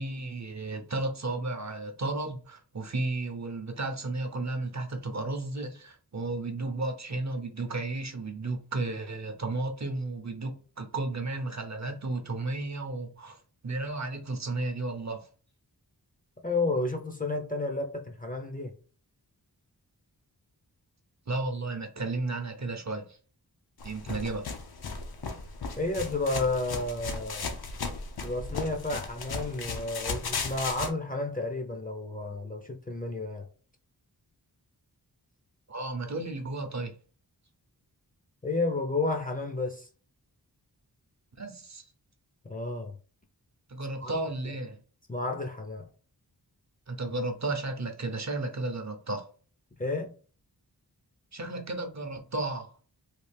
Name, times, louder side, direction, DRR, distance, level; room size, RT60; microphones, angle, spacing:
voice 1, 0.0-13.4 13.6-15.3 21.3-23.2 23.8-24.5 35.7-36.9 41.4-41.8 43.7-44.8 46.9-49.3 51.3-52.7, right 2 dB, 45° right, 0.6 m, -33 dB
voice 2, 16.4-18.7 25.8-27.5 28.2-33.5 38.4-39.9 42.4-42.9 44.0-44.1 45.1-45.9 49.8-50.1, left 2 dB, 20° left, 0.5 m, -31 dB
sound 1, 23.8-30.9, left 4 dB, 65° left, 0.7 m, -36 dB
3.3 x 2.4 x 3.3 m
wide cardioid pair, 85°, 39 cm